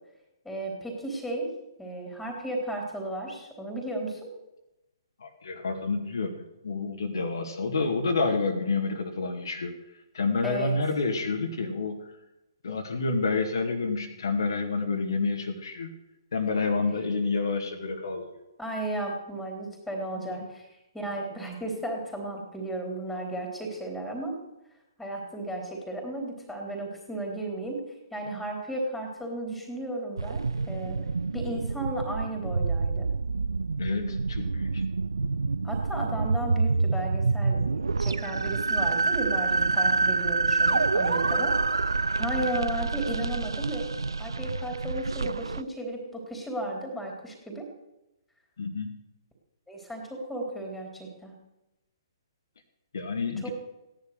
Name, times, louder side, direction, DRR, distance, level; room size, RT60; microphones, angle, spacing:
voice 1, 0.5-1.5 1.8-4.3 10.4-10.7 18.6-20.6 20.9-24.3 25.0-27.8 28.1-31.0 31.3-33.1 35.6-41.5 42.2-43.9 44.2-47.7 49.7-51.3 53.4-53.5, right 1 dB, 5° left, 1 dB, 3.7 m, -34 dB
voice 2, 5.2-9.8 10.1-12.0 12.6-15.9 16.3-18.3 20.1-20.5 33.8-34.8 48.6-48.9 52.9-53.5, left 4 dB, 55° left, 3 dB, 2.2 m, -29 dB
sound 1, 30.2-45.6, right 3 dB, 70° right, 0.5 m, -27 dB
17.0 x 10.5 x 6.7 m, 0.95 s
figure-of-eight pair, 125°, 2 cm